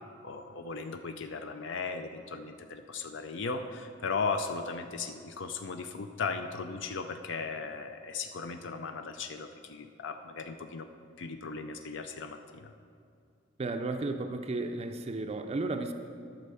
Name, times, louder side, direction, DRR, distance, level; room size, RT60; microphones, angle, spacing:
voice 1, 0.2-10.9 11.2-12.7, left 4 dB, 65° left, 7 dB, 0.5 m, -37 dB
voice 2, 13.6-15.9, right 2 dB, 30° right, 6 dB, 0.4 m, -33 dB
11.5 x 4.4 x 6.9 m, 2.4 s
head